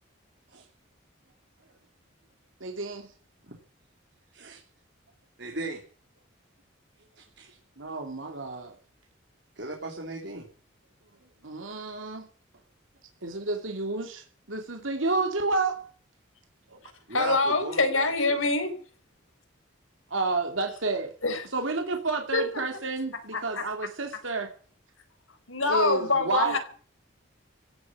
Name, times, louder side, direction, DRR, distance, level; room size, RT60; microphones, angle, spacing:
voice 1, 2.6-3.1 7.8-8.8 11.4-12.3 13.2-15.8 16.7-16.8 20.1-21.1 21.5-24.5 25.6-26.6, right 3 dB, 80° right, 2.7 m, -30 dB
voice 2, 4.3-4.6 5.4-5.8 7.1-7.6 9.5-10.5 17.1-18.4, right 2 dB, 60° right, 3.5 m, -37 dB
voice 3, 17.1-18.7 21.2-21.4 22.3-22.6 23.3-23.7 25.5-26.6, left 3 dB, 85° left, 4.5 m, -25 dB
16.0 x 8.5 x 9.7 m
head